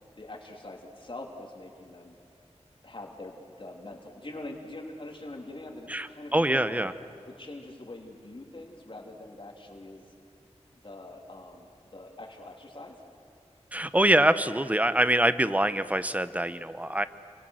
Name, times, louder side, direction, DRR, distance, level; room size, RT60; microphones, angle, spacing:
voice 1, 0.2-2.2 2.8-6.9 7.2-10.1 10.8-13.0, left 2 dB, 50° left, 1 dB, 3.0 m, -43 dB
voice 2, 5.9-6.9 13.7-17.0, right 1 dB, 15° right, 13 dB, 0.9 m, -24 dB
29.5 x 24.5 x 6.5 m, 2.3 s
wide cardioid pair, 65°, 11 cm